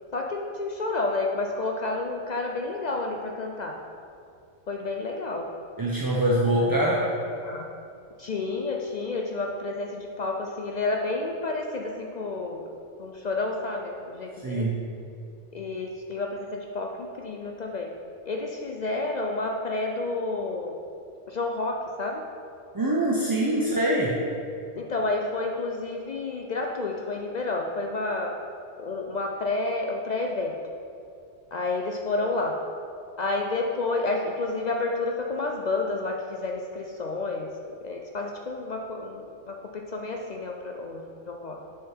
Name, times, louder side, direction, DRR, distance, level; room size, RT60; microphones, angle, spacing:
voice 1, 0.1-3.8 4.7-5.5 6.7-7.1 7.4-7.7 8.2-12.6 13.0-14.7 15.5-17.9 18.3-20.7 21.3-22.2 24.8-28.4 28.8-30.6 31.5-32.6 33.2-37.5 37.8-41.6, left 3 dB, 60° left, 2 dB, 0.4 m, -30 dB
voice 2, 5.8-7.1 14.4-14.8 22.7-24.1, right 1 dB, 25° right, -5 dB, 0.5 m, -24 dB
6.4 x 5.7 x 4.4 m, 2.5 s
omnidirectional pair, 1.2 m